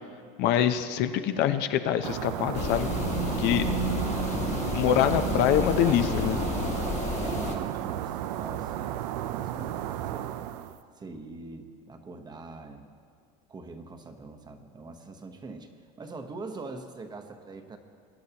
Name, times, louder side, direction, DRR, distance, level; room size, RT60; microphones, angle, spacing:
voice 1, 0.4-2.9 3.4-3.6 4.7-6.4, left 10 dB, 55° left, 9 dB, 0.7 m, -24 dB
sound 1, 2.0-10.8, right 12 dB, 85° right, 0.6 m, -33 dB
sound 2, 2.5-7.6, left 5 dB, 35° left, 1.4 m, -31 dB
voice 2, 4.8-5.2 5.8-6.4 7.2-9.0 9.3-10.3 11.0-12.9 13.5-15.7 16.0-17.8, right 3 dB, 20° right, 6 dB, 1.0 m, -42 dB
22.0 x 9.6 x 2.9 m, 2.3 s
supercardioid pair, 120°, 20 cm